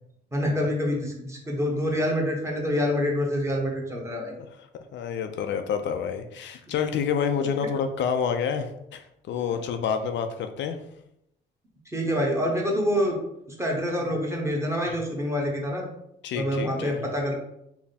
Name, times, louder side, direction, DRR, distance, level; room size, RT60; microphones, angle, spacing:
voice 1, 0.3-4.4 6.7-6.8 11.9-13.2 13.5-15.9 16.3-17.3, equal, 15° right, 0 dB, 1.0 m, -26 dB
voice 2, 4.9-10.8 16.2-17.0, left 7 dB, 65° left, 7 dB, 0.4 m, -28 dB
3.5 x 2.1 x 4.0 m, 0.78 s
cardioid pair, 90°, 20 cm